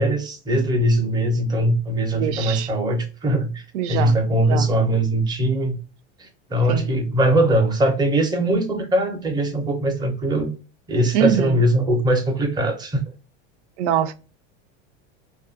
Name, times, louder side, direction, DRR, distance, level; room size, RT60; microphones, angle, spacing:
voice 1, 0.0-3.6 3.9-5.8 6.2-10.5 10.9-13.0, right 1 dB, 15° right, 0.5 m, -21 dB
voice 2, 2.1-2.7 3.7-4.7 6.7-6.9 11.1-11.6 13.8-14.1, right 10 dB, 85° right, 0.5 m, -23 dB
2.6 x 2.3 x 2.5 m
supercardioid pair, 135°, 33 cm